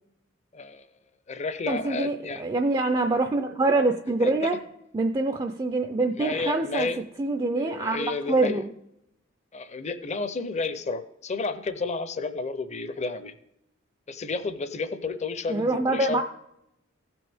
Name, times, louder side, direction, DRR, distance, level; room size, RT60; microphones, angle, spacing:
voice 1, 0.5-0.9 1.3-2.4 4.2-4.3 6.2-7.0 7.6-8.6 9.5-13.3 14.1-16.2, left 4 dB, 35° left, 12 dB, 0.6 m, -31 dB
voice 2, 1.7-4.6 4.9-6.9 7.2-8.7 15.5-16.2, right 2 dB, 20° right, 6 dB, 0.4 m, -25 dB
15.5 x 6.0 x 3.5 m, 0.81 s
head